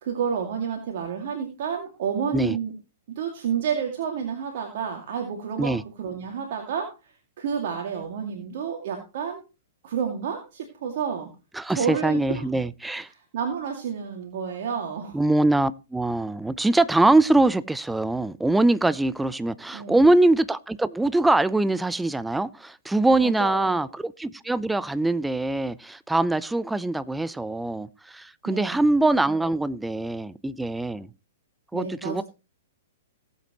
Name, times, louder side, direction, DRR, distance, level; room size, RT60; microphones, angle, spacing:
voice 1, 0.0-2.7 3.1-9.4 9.8-11.3 11.7-12.4 13.1-15.2 19.7-20.1 23.2-23.9 28.4-28.8 31.7-32.2, right 7 dB, 50° right, 2.3 m, -30 dB
voice 2, 11.5-13.1 15.1-31.1 31.7-32.2, right 2 dB, 5° right, 0.6 m, -23 dB
18.5 x 8.3 x 3.0 m
figure-of-eight pair, 110°, 0 cm